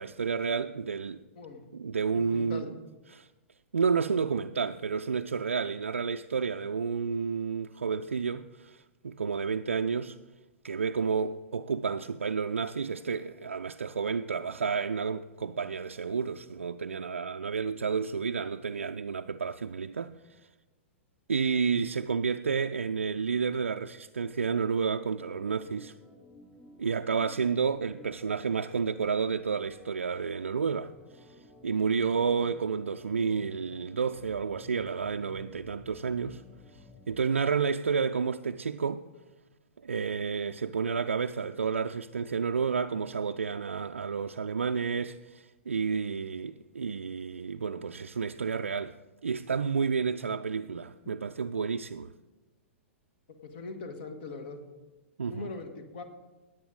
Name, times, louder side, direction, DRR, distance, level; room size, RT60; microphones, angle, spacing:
voice 1, 0.0-1.2 1.7-2.7 3.1-3.3 3.7-10.2 10.6-20.4 21.3-25.9 26.8-30.9 31.2-31.3 31.6-36.4 37.1-39.0 39.8-49.0 49.2-52.1 55.2-55.5, right 5 dB, 75° right, 0.4 m, -30 dB
voice 2, 2.3-2.7 53.4-54.6 55.3-56.0, left 3 dB, 50° left, 1.7 m, -41 dB
Organ, 25.1-37.2, left 2 dB, 15° left, 4.7 m, -55 dB
16.5 x 8.6 x 3.9 m
figure-of-eight pair, 105°, 7 cm